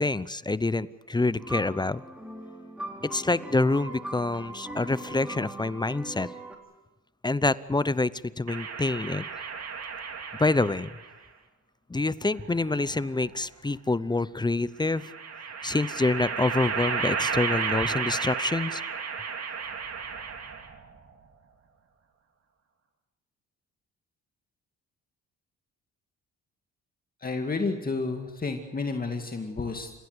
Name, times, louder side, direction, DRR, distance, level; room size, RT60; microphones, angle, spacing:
voice 1, 0.0-2.0 3.1-6.3 7.2-9.2 10.4-10.9 11.9-15.0 15.6-18.8, left 2 dB, 15° left, 17 dB, 0.7 m, -26 dB
sound 1, 1.4-6.6, right 1 dB, 5° right, 3.7 m, -40 dB
sound 2, 8.5-11.1 12.3-13.3 14.9-20.9, right 6 dB, 55° right, 3.0 m, -33 dB
voice 2, 27.2-29.9, left 3 dB, 30° left, 4 dB, 2.2 m, -31 dB
29.0 x 16.0 x 8.1 m, 1.1 s
cardioid pair, 90°, 30 cm